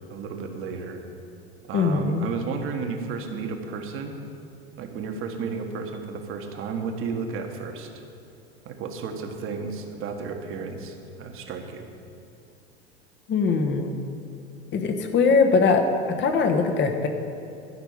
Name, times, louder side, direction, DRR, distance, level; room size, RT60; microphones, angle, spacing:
voice 1, 0.1-1.0 1.7-4.2 4.8-7.9 8.6-11.9, right 5 dB, 40° right, 4 dB, 1.5 m, -33 dB
voice 2, 1.7-2.2 13.3-14.0 14.7-17.1, left 4 dB, 35° left, 5 dB, 1.4 m, -21 dB
12.5 x 6.0 x 8.6 m, 2.7 s
figure-of-eight pair, 85°, 33 cm